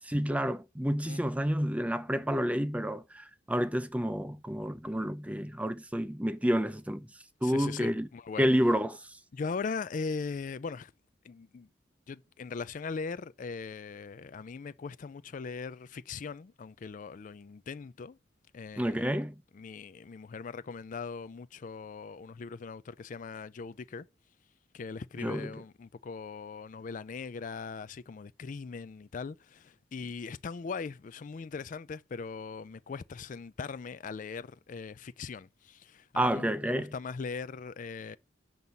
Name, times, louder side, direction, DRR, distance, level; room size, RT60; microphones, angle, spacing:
voice 1, 0.1-7.1 7.4-8.1 8.4-9.0 18.8-19.3 25.2-25.5 36.2-36.9, equal, 10° right, 0.6 m, -29 dB
voice 2, 7.4-8.5 9.3-10.9 11.2-11.7 12.1-18.2 18.5-19.1 19.5-24.1 24.7-38.2, left 5 dB, 45° left, 0.4 m, -40 dB
9.0 x 4.0 x 6.9 m
head